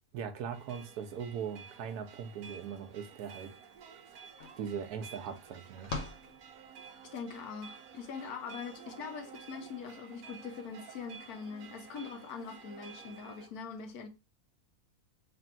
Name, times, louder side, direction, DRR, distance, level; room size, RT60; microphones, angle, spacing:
voice 1, 0.1-3.5 4.6-5.9, right 7 dB, 90° right, 1.2 m, -40 dB
sound 1, 0.5-13.5, right 6 dB, 70° right, 1.0 m, -52 dB
sound 2, 3.8-3.9 4.1-7.2, left 3 dB, 60° left, 1.0 m, -44 dB
voice 2, 7.1-14.1, left 6 dB, 80° left, 1.2 m, -43 dB
3.3 x 2.6 x 4.3 m
omnidirectional pair, 1.6 m